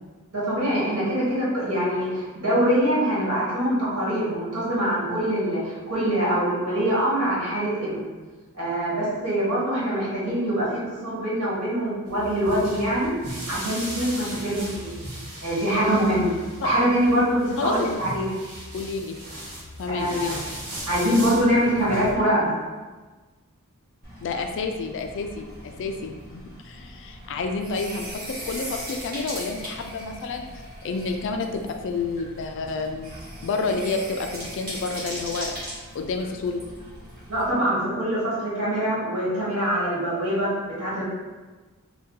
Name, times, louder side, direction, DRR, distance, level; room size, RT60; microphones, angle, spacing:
voice 1, 0.3-8.1 8.5-13.1 13.5-14.9 15.4-16.3 16.6-18.3 19.9-20.3 20.9-22.5 37.3-41.0, equal, 70° right, -8 dB, 1.4 m, -24 dB
sound 1, 12.1-22.1, equal, 85° right, 1.1 m, -37 dB
voice 2, 18.7-19.2 19.8-20.4 24.2-33.1 33.4-35.5 35.9-36.6, left 4 dB, 55° left, 5 dB, 0.3 m, -30 dB
sound 2, 24.0-37.5, equal, 40° right, 1.1 m, -39 dB
2.7 x 2.2 x 3.6 m, 1.3 s
head